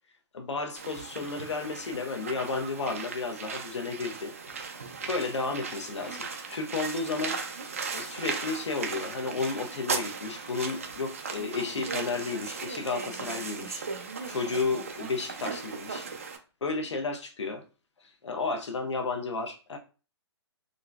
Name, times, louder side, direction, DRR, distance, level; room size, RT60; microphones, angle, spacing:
voice 1, 0.3-4.3 5.1-7.4 7.9-13.9 14.3-16.1 16.6-17.6 18.2-19.8, left 4 dB, 85° left, 0.8 m, -32 dB
sound 1, 0.8-16.4, right 5 dB, 30° right, 0.4 m, -37 dB
3.8 x 2.1 x 2.3 m
hypercardioid pair, 175°, 15 cm